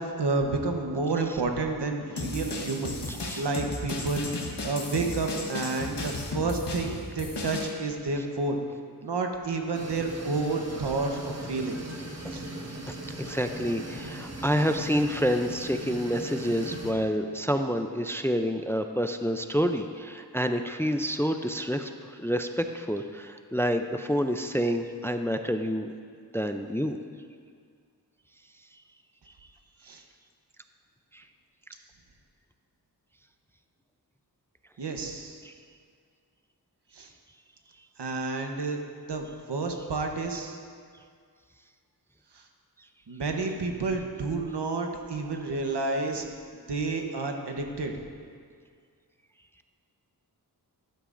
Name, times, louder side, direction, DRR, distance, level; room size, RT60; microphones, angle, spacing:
voice 1, 0.0-4.3 4.6-8.6 9.0-11.8 12.3-12.5 29.8-30.0 34.8-35.4 36.9-37.1 38.0-38.8 39.1-40.6 43.1-46.2 46.7-48.0, right 3 dB, 85° right, 3 dB, 1.0 m, -30 dB
sound 1, 2.2-7.7, left 2 dB, 90° left, 1.2 m, -35 dB
voice 2, 3.1-3.4 12.2-12.4 12.9-25.9 26.3-27.0 31.1-31.2 35.4-35.5, equal, 5° left, 7 dB, 0.4 m, -28 dB
sound 2, 9.7-16.9, right 1 dB, 40° right, 1.4 m, -39 dB
12.5 x 11.5 x 2.6 m, 2.1 s
wide cardioid pair, 60°, 40 cm